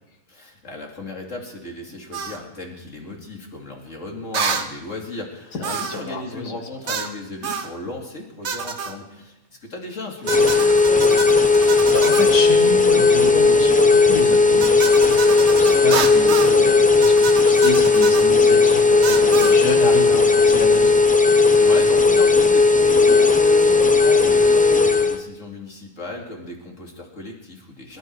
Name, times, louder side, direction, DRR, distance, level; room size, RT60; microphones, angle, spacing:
voice 1, 0.3-11.4 21.6-28.0, left 2 dB, 50° left, 0 dB, 3.1 m, -36 dB
sound 1, 2.1-2.4 4.3-4.7 5.6-6.1 6.9-7.1 7.4-7.7 8.4-9.0 10.3-12.4 14.6-16.6 17.0-18.3 19.0-19.6, right 5 dB, 50° right, 1.2 m, -28 dB
voice 2, 5.5-6.6 6.8-7.0 11.6-21.4, left 3 dB, 75° left, 5 dB, 2.3 m, -29 dB
sound 2, 10.2-25.2, left 4 dB, 10° left, 0.3 m, -15 dB
24.5 x 12.5 x 4.8 m, 0.98 s
omnidirectional pair, 1.7 m